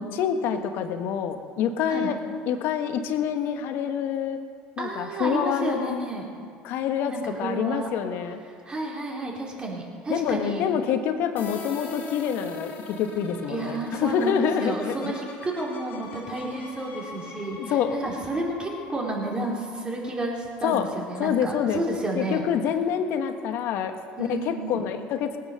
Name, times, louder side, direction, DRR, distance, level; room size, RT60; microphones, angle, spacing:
voice 1, 0.0-2.2 2.5-4.4 4.8-6.0 6.6-8.4 10.1-15.1 17.7-18.0 20.6-20.9 21.2-21.8 22.1-25.4, left 8 dB, 65° left, 7 dB, 1.3 m, -27 dB
voice 2, 4.8-6.2 7.1-7.9 8.6-10.6 13.5-22.4 24.2-24.9, right 2 dB, 25° right, -2 dB, 4.0 m, -31 dB
sound 1, 11.4-20.9, left 3 dB, 45° left, 3.4 m, -42 dB
19.0 x 8.9 x 6.9 m, 2.2 s
supercardioid pair, 95°, 4 cm